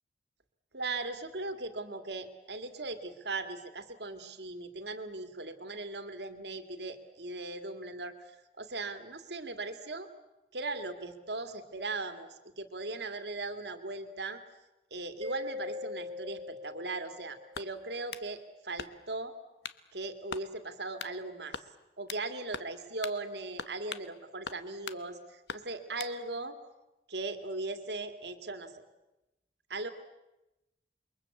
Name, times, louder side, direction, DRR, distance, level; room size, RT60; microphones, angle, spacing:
voice 1, 0.7-10.1 10.5-14.4 14.9-19.3 19.9-21.6 22.0-26.6 27.1-28.8 29.7-29.9, right 2 dB, 70° right, 8 dB, 2.4 m, -39 dB
Mallet percussion, 15.2-17.7, left 3 dB, 35° right, 2.2 m, -41 dB
sound 1, 17.5-18.3 18.8-19.2 19.6-19.8 20.3-20.5 21.0-21.2 21.5-22.3 22.5-22.8 23.0-23.2 23.6-24.1 24.5-25.0 25.5-26.2, left 6 dB, 70° left, 1.1 m, -42 dB
28.5 x 23.0 x 8.4 m, 0.98 s
head